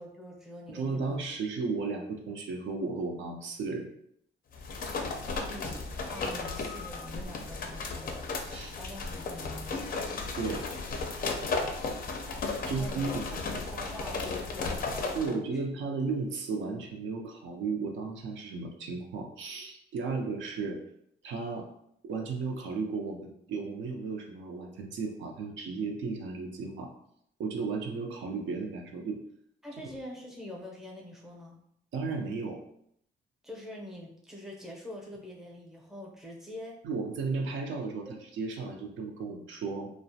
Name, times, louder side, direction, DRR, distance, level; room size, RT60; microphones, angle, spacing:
voice 1, 0.0-1.2 5.4-8.2 8.7-9.9 12.6-15.6 29.6-31.6 33.4-36.8 38.1-38.2, equal, ahead, -2 dB, 0.6 m, -44 dB
voice 2, 0.7-3.9 8.5-8.7 10.4-10.7 12.7-13.4 15.1-20.8 21.2-21.7 22.0-26.9 27.4-29.2 31.9-32.6 36.8-39.9, right 4 dB, 70° right, 2 dB, 0.5 m, -34 dB
sound 1, 4.5-15.3, left 3 dB, 45° left, 0.4 m, -35 dB
2.3 x 2.0 x 2.6 m, 0.71 s
cardioid pair, 90°, 20 cm